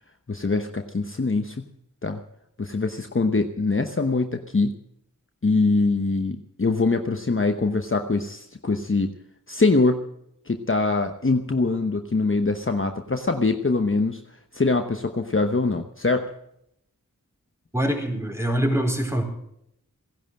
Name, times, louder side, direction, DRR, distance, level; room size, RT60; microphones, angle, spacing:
voice 1, 0.3-1.6 2.0-2.2 2.6-4.7 5.4-9.1 9.5-10.0 10.5-14.2 14.5-16.3, left 3 dB, 40° left, 6 dB, 1.0 m, -23 dB
voice 2, 17.7-19.3, right 1 dB, 10° right, 2 dB, 4.3 m, -24 dB
17.0 x 11.0 x 7.5 m, 0.76 s
wide cardioid pair, 45°, 33 cm